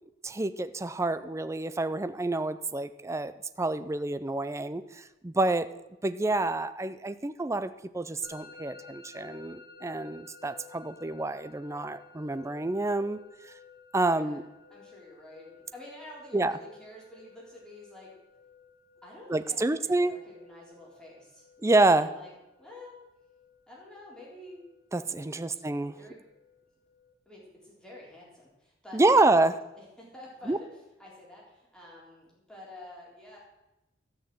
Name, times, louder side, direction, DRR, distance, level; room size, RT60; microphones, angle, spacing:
voice 1, 0.2-3.3 3.6-5.7 6.0-13.2 13.9-14.4 16.3-16.5 19.3-20.1 21.6-22.1 24.9-26.0 28.9-29.5 30.5-30.6, right 2 dB, 15° right, 12 dB, 0.5 m, -27 dB
Musical instrument, 8.2-27.1, left 5 dB, 50° left, 1.4 m, -55 dB
voice 2, 14.1-14.4 14.7-18.1 19.0-21.5 21.9-22.3 22.6-23.0 23.7-24.6 25.2-25.6 25.9-26.2 27.3-29.5 29.7-33.4, left 1 dB, 5° left, -5 dB, 4.0 m, -49 dB
13.0 x 6.4 x 7.7 m, 0.98 s
head